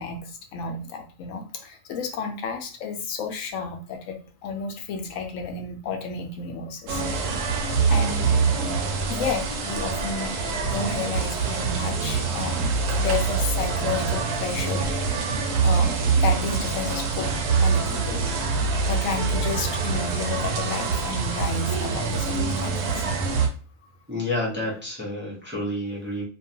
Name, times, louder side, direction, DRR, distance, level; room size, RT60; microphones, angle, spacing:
voice 1, 0.0-7.5 7.9-8.3 9.1-10.3 10.7-12.7 13.0-15.3 15.6-17.3 17.6-18.2 18.9-23.0, left 5 dB, 90° left, 4 dB, 1.0 m, -32 dB
sound 1, 6.9-23.5, right 5 dB, 80° right, 0.9 m, -25 dB
voice 2, 24.1-26.2, left 1 dB, 10° right, -5 dB, 0.5 m, -29 dB
2.5 x 2.2 x 2.7 m, 0.38 s
omnidirectional pair, 1.3 m